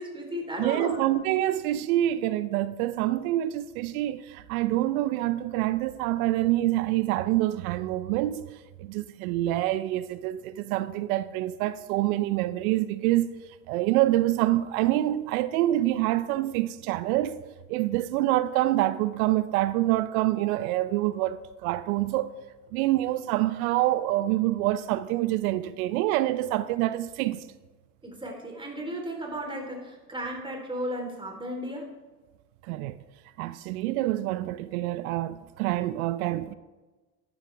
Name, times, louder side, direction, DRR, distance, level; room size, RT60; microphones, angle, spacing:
voice 1, 0.0-1.1 28.0-31.9, equal, 10° right, 3.6 m, -35 dB
voice 2, 0.6-8.5 8.8-13.3 13.7-17.4 17.7-22.3 22.7-27.5 32.6-33.0 33.4-36.5, right 15 dB, 75° right, 0.7 m, -26 dB
14.5 x 11.0 x 3.4 m
hypercardioid pair, 80°, 43 cm